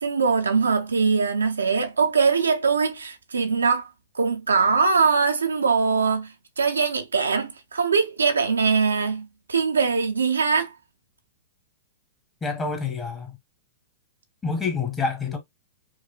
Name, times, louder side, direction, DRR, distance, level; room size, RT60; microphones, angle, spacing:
voice 1, 0.0-3.9 4.1-10.7, right 5 dB, 90° right, 0.8 m, -22 dB
voice 2, 12.4-13.4 14.4-15.4, left 4 dB, 15° left, 1.4 m, -27 dB
4.8 x 2.3 x 2.5 m
hypercardioid pair, 110°, 0 cm